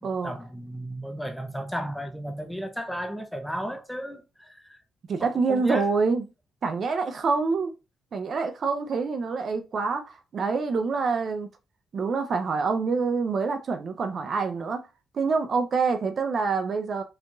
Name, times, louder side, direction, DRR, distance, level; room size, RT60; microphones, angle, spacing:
voice 1, 0.0-4.8 5.2-5.9, equal, 5° left, 0.6 m, -34 dB
voice 2, 5.1-6.2 6.6-7.7 8.1-11.5 11.9-14.8 15.1-17.0, right 4 dB, 50° right, 0.5 m, -26 dB
4.8 x 2.9 x 2.4 m
cardioid pair, 100°, 0 cm